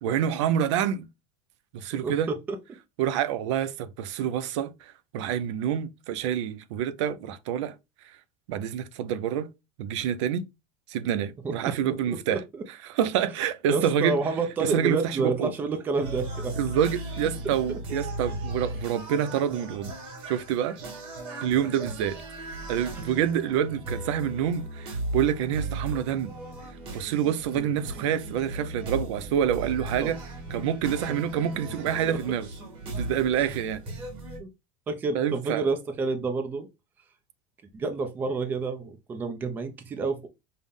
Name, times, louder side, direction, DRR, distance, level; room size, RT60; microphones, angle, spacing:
voice 1, 0.0-1.1 1.7-2.3 3.0-7.7 8.5-9.5 9.8-10.5 10.9-12.4 12.9-14.2 14.6-15.5 16.6-19.9 20.3-20.8 21.4-22.2 22.7-26.3 26.9-30.2 30.5-32.5 32.9-33.8 35.1-35.6, right 9 dB, 70° right, 0.5 m, -27 dB
voice 2, 2.0-2.6 11.4-12.6 13.7-16.7 17.7-17.8 27.5-27.7 30.0-30.1 33.4-33.6 34.4-34.5 34.9-36.7 37.7-40.3, right 4 dB, 10° right, 0.4 m, -29 dB
sound 1, 16.0-34.4, right 2 dB, 35° right, 1.6 m, -37 dB
5.5 x 2.1 x 3.4 m
cardioid pair, 180°, 16 cm